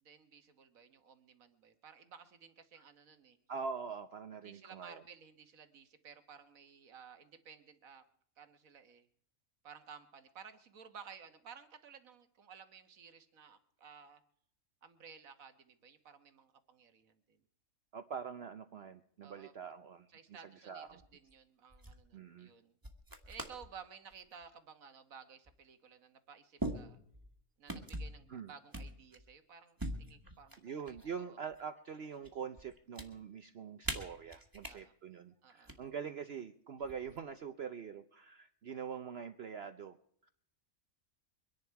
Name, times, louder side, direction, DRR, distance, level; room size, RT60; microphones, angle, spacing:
voice 1, 0.0-3.4 4.4-8.0 8.4-9.1 9.6-14.2 14.8-17.4 19.2-19.5 20.1-22.7 23.3-27.0 27.6-31.4 34.6-34.9 35.4-35.8, right 6 dB, 75° right, 10 dB, 1.7 m, -55 dB
voice 2, 3.5-5.0 17.9-20.1 20.7-21.0 22.1-22.5 28.3-28.5 30.6-40.0 40.2-40.3, right 6 dB, 55° right, 9 dB, 0.9 m, -44 dB
sound 1, 20.9-21.3 21.7-22.0 22.8-23.7 24.1-24.4 25.5-25.6 26.6-27.3 27.7-28.2 28.7-29.3 29.8-31.1 31.5-32.3 32.6-33.1 33.8-34.7 35.5-35.7 36.8-37.3, right 1 dB, 15° right, 1.6 m, -42 dB
24.0 x 10.5 x 4.6 m, 0.67 s
omnidirectional pair, 1.4 m